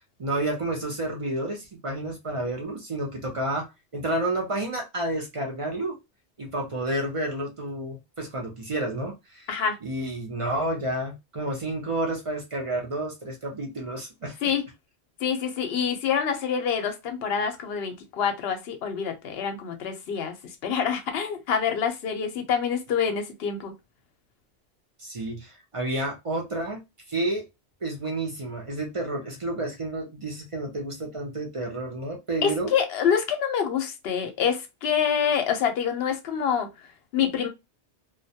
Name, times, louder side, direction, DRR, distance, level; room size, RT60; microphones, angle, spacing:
voice 1, 0.2-3.7 3.9-6.0 6.4-9.5 9.8-14.4 25.0-26.8 27.1-27.5 27.8-32.7, right 1 dB, 45° right, 0.4 m, -30 dB
voice 2, 15.2-20.3 20.6-23.7 32.4-36.7 37.1-37.5, left 7 dB, 70° left, 0.8 m, -26 dB
2.1 x 2.1 x 2.7 m
omnidirectional pair, 1.1 m